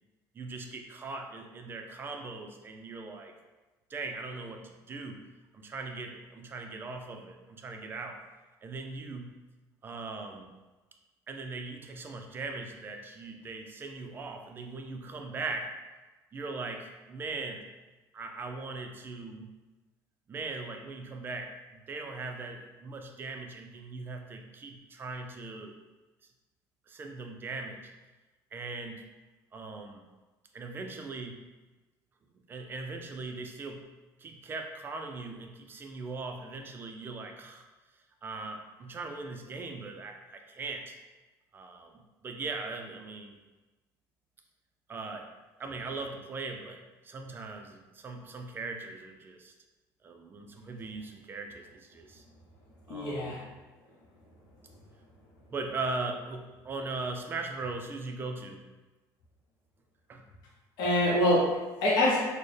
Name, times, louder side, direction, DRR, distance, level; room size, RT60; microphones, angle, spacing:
voice 1, 0.3-3.3 3.9-5.2 5.5-8.2 8.6-9.3 9.8-10.5 11.3-15.7 16.3-17.6 18.1-19.5 20.3-25.7 26.9-27.8 28.5-29.0 29.5-30.1 30.5-31.4 32.5-33.9 34.2-37.7 38.2-41.0 41.5-41.9 42.2-43.4 44.9-45.3 45.6-49.5 50.0-52.2 52.9-53.5 55.5-58.6 60.1-60.3, right 3 dB, 30° right, 4 dB, 0.4 m, -39 dB
voice 2, 52.9-53.4 60.8-62.2, left 1 dB, 65° left, -4 dB, 0.8 m, -25 dB
4.2 x 2.1 x 3.2 m, 1.2 s
cardioid pair, 130°, 8 cm